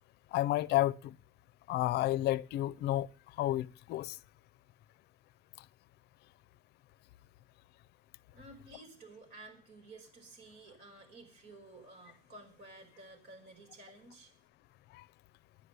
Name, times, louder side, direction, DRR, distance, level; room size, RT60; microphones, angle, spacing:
voice 1, 0.3-1.1 1.7-3.1 3.4-4.2 14.9-15.0, left 15 dB, 75° left, 0.5 m, -31 dB
voice 2, 8.3-14.3, right 2 dB, 80° right, 5.1 m, -53 dB
10.5 x 9.5 x 8.1 m
cardioid pair, 110°, 17 cm